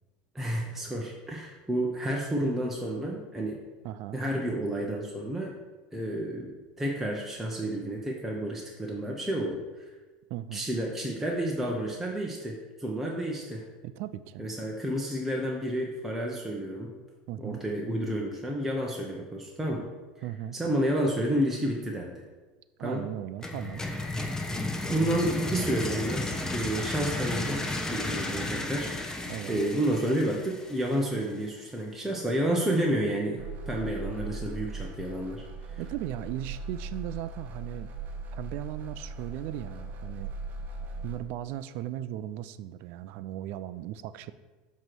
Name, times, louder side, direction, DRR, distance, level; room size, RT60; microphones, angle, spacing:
voice 1, 0.3-3.6 4.1-5.6 5.9-9.6 10.5-13.6 14.4-16.9 17.4-19.9 20.5-22.2 22.8-23.0 24.9-28.9 29.5-35.4 35.7-35.8, right 1 dB, 5° right, -2 dB, 0.9 m, -30 dB
voice 2, 3.8-4.2 10.3-10.7 13.8-14.5 17.3-17.6 20.2-20.6 22.8-23.8 29.3-29.6 35.8-37.9 38.3-40.3 41.0-44.3, right 13 dB, 60° right, 14 dB, 0.3 m, -37 dB
sound 1, 23.4-31.2, left 2 dB, 15° left, 0.9 m, -33 dB
sound 2, 33.4-41.2, right 3 dB, 45° right, 0.9 m, -39 dB
7.4 x 3.1 x 6.1 m, 1.2 s
hypercardioid pair, 95°, 4 cm